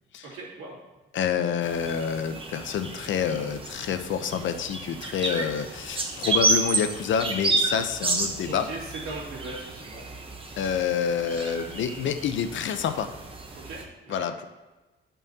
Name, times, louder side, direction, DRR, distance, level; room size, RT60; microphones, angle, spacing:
voice 1, 0.2-0.8 8.5-10.0 13.5-13.8 14.1-14.3, right 3 dB, 90° right, -5 dB, 2.6 m, -39 dB
voice 2, 1.1-8.7 10.6-13.1 14.1-14.5, left 7 dB, 65° left, 8 dB, 0.6 m, -28 dB
sound 1, 1.6-13.8, right 3 dB, 25° right, 0.9 m, -31 dB
10.5 x 5.4 x 2.8 m, 1.1 s
cardioid pair, 125°, 21 cm